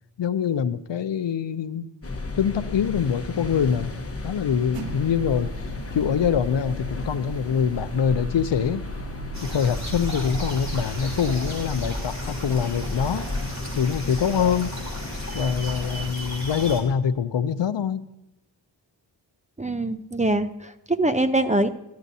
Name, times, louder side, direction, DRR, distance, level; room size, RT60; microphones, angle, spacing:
voice 1, 0.2-1.9 2.3-3.9 4.2-5.5 5.9-8.8 9.4-13.3 13.7-14.8 15.3-18.1, left 7 dB, 70° left, 14 dB, 0.6 m, -24 dB
sound 1, 2.0-16.1, left 2 dB, 30° left, 1.1 m, -34 dB
sound 2, 4.7-11.8, right 2 dB, 70° right, 0.7 m, -36 dB
sound 3, 9.3-16.8, right 1 dB, 35° right, 3.4 m, -35 dB
voice 2, 19.6-21.7, right 2 dB, 15° right, 9 dB, 0.5 m, -23 dB
14.5 x 11.5 x 2.7 m, 0.94 s
wide cardioid pair, 55°, 45 cm